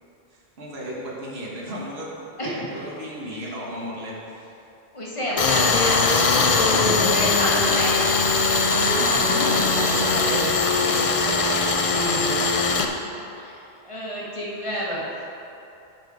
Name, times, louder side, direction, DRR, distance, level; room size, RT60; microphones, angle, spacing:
voice 1, 0.6-2.1 2.4-4.5 6.7-7.3 8.7-12.5, equal, 70° right, -4 dB, 1.5 m, -32 dB
voice 2, 4.9-6.0 6.5-8.0 13.4-13.5 13.8-15.0, equal, 30° left, -5 dB, 1.4 m, -28 dB
Tools, 5.4-12.9, left 4 dB, 45° left, 0.5 m, -21 dB
sound 1, 6.4-11.8, right 4 dB, 35° right, 1.2 m, -39 dB
9.4 x 4.6 x 4.7 m, 2.8 s
omnidirectional pair, 1.1 m